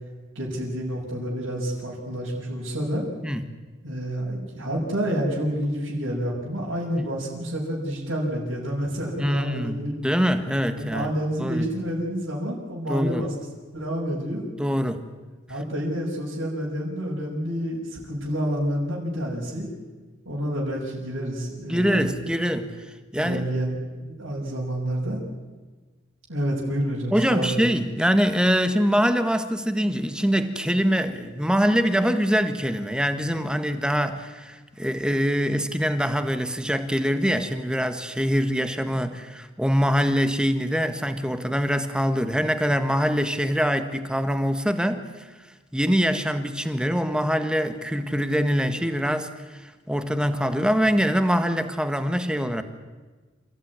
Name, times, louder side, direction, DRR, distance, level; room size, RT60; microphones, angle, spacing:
voice 1, 0.3-3.0 3.8-9.9 10.8-13.3 13.7-14.4 15.5-19.7 20.2-22.3 23.1-23.8 24.1-25.2 26.3-27.7, equal, 80° right, -4 dB, 6.3 m, -28 dB
voice 2, 9.2-11.1 11.4-11.7 12.9-13.3 14.6-15.1 21.7-22.7 23.1-23.4 27.1-45.3 45.7-52.6, equal, 5° right, 9 dB, 1.6 m, -24 dB
28.5 x 15.5 x 9.8 m, 1.3 s
head